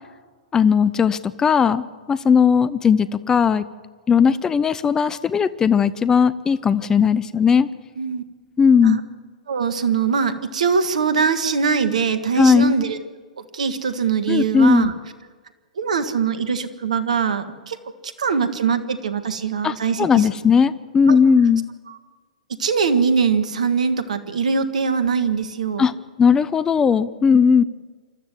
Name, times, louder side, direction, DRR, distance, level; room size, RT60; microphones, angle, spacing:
voice 1, 0.5-3.6 4.1-7.7 8.6-9.0 12.4-12.7 14.3-14.9 19.6-21.6 25.8-25.9 26.2-27.6, left 6 dB, 15° left, 16 dB, 0.6 m, -17 dB
voice 2, 9.5-13.0 13.4-14.9 15.8-17.8 18.0-20.3 21.1-21.2 21.9-22.0 22.5-25.9, right 5 dB, 65° right, 11 dB, 1.7 m, -22 dB
27.0 x 13.0 x 7.8 m, 1.5 s
figure-of-eight pair, 110°, 4 cm